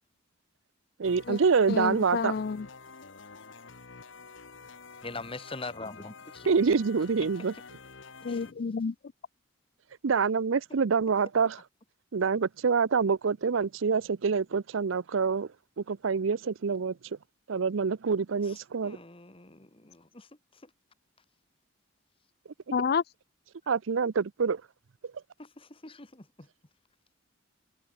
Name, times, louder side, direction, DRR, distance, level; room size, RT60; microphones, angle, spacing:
sound 1, 1.0-8.5, left 4 dB, 65° left, 1.4 m, -49 dB
voice 1, 1.0-2.3 6.5-7.5 10.0-11.6 12.1-15.5 15.8-17.0 17.5-19.0 23.7-24.6, right 5 dB, 75° right, 0.5 m, -26 dB
voice 2, 1.7-2.7 8.2-8.9 22.7-23.0, left 5 dB, 50° left, 0.4 m, -29 dB
voice 3, 5.0-6.5 8.3-8.4 18.4-20.7 25.4-26.5, left 3 dB, 25° left, 1.8 m, -43 dB
head